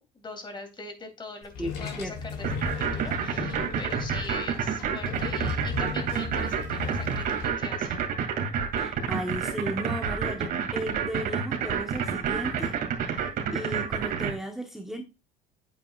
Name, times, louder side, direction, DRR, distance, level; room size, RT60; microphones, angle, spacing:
voice 1, 0.1-8.0, left 3 dB, 25° left, 3.0 m, -42 dB
sound 1, 1.4-7.4, left 4 dB, 70° left, 3.4 m, -36 dB
voice 2, 1.6-2.1 8.8-12.8 13.0-15.0, equal, ahead, 1.1 m, -35 dB
sound 2, 2.4-14.3, right 7 dB, 55° right, 2.5 m, -28 dB
8.9 x 8.3 x 2.4 m
cardioid pair, 120°, 18 cm